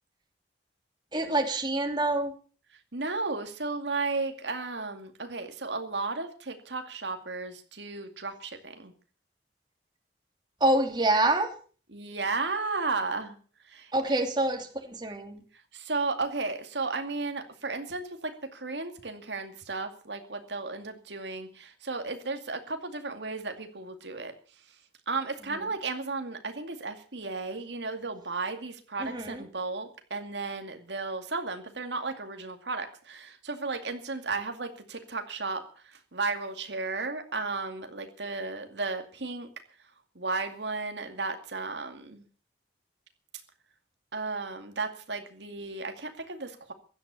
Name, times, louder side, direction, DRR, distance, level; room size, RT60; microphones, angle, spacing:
voice 1, 1.1-2.3 10.6-11.5 13.9-15.4 29.0-29.4, right 2 dB, 25° right, 3 dB, 2.8 m, -26 dB
voice 2, 2.9-8.9 11.9-13.4 13.7-14.1 15.7-24.3 25.1-39.5 40.2-42.2 44.1-46.7, right 3 dB, 85° right, 6 dB, 2.3 m, -34 dB
16.5 x 12.0 x 7.0 m, 0.42 s
head